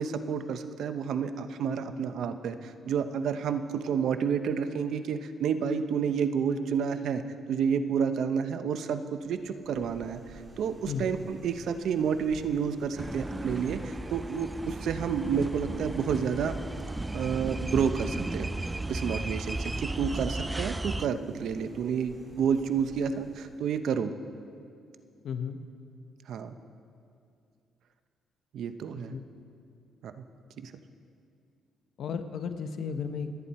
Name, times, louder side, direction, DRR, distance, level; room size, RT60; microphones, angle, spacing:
voice 1, 0.0-7.2 7.5-10.2 10.6-16.5 17.1-24.1 26.3-26.5 28.5-29.1 30.0-30.2 30.6-30.7, right 7 dB, 70° right, 10 dB, 0.8 m, -30 dB
sound 1, 9.2-23.9, right 2 dB, 35° right, 2.0 m, -51 dB
sound 2, 13.0-21.1, right 2 dB, 15° right, 0.3 m, -35 dB
voice 2, 25.2-25.6 29.1-29.2 32.0-33.3, left 6 dB, 70° left, 8 dB, 1.1 m, -34 dB
29.0 x 9.7 x 4.4 m, 2.4 s
cardioid pair, 90°, 0 cm